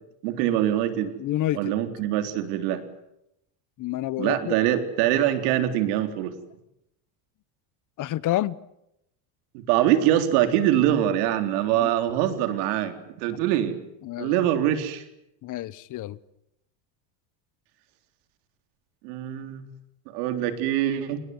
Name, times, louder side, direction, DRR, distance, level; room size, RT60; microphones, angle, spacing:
voice 1, 0.2-1.1 1.5-2.8 4.2-6.3 9.5-13.8 14.2-15.0 19.0-19.7 20.1-21.2, right 12 dB, 80° right, 7 dB, 3.9 m, -24 dB
voice 2, 1.2-1.6 3.8-4.5 8.0-8.6 11.7-11.9 14.0-14.3 15.4-16.2, left 14 dB, 40° left, 19 dB, 1.0 m, -28 dB
28.0 x 20.0 x 9.6 m, 0.83 s
cardioid pair, 135°, 46 cm